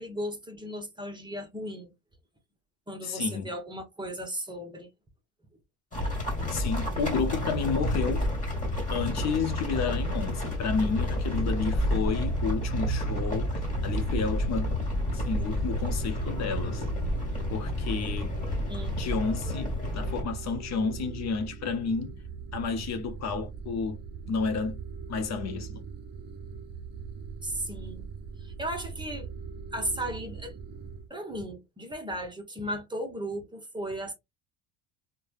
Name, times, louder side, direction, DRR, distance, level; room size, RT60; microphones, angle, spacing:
voice 1, 0.0-1.9 2.9-4.9 18.7-19.1 27.4-28.1 28.4-29.3 29.7-30.5 31.1-34.1, right 1 dB, 10° right, 0.8 m, -36 dB
voice 2, 3.0-3.5 6.5-8.3 8.9-14.7 15.1-16.8 17.5-18.3 18.9-22.1 22.5-24.0 24.3-24.8 25.1-25.8, left 5 dB, 50° left, 0.7 m, -31 dB
sound 1, 5.9-20.2, left 1 dB, 20° left, 1.7 m, -30 dB
sound 2, 13.3-31.1, right 6 dB, 30° right, 0.4 m, -41 dB
3.1 x 2.2 x 2.4 m
supercardioid pair, 100°, 36 cm